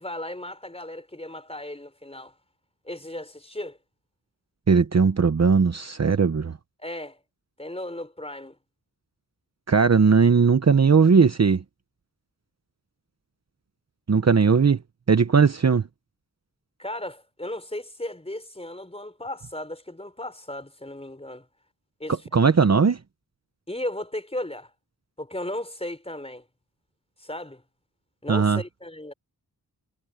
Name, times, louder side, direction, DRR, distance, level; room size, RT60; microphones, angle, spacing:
voice 1, 0.0-2.3 2.8-3.8 6.8-7.2 7.6-8.6 16.8-21.5 22.0-22.5 23.7-24.7 25.2-26.4 27.2-27.6 28.2-29.1, left 1 dB, 15° left, 5.0 m, -35 dB
voice 2, 4.7-6.6 9.7-11.6 14.1-14.8 15.1-15.8 22.3-23.0 28.3-28.6, right 5 dB, 45° right, 0.9 m, -18 dB
wide cardioid pair, 90°, 38 cm